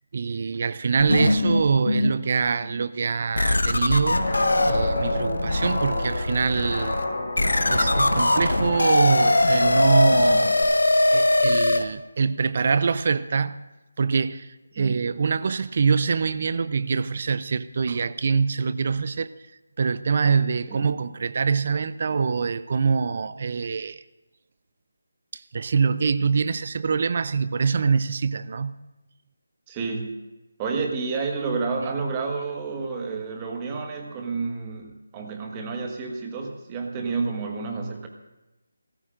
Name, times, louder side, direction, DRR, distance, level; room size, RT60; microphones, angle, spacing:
voice 1, 0.1-4.3 4.6-7.0 7.7-10.8 11.1-13.6 14.0-19.3 19.8-24.0 25.3-28.7, right 5 dB, 45° right, 0.5 m, -24 dB
sound 1, 1.0-2.2 2.7-2.8 3.4-11.8, left 2 dB, 90° left, 1.2 m, -22 dB
Guitar, 4.1-10.6, left 2 dB, 55° left, 5.9 m, -28 dB
voice 2, 29.7-30.2 30.6-38.1, right 4 dB, 20° right, 1.5 m, -30 dB
24.0 x 14.5 x 2.5 m
figure-of-eight pair, 160°, 0 cm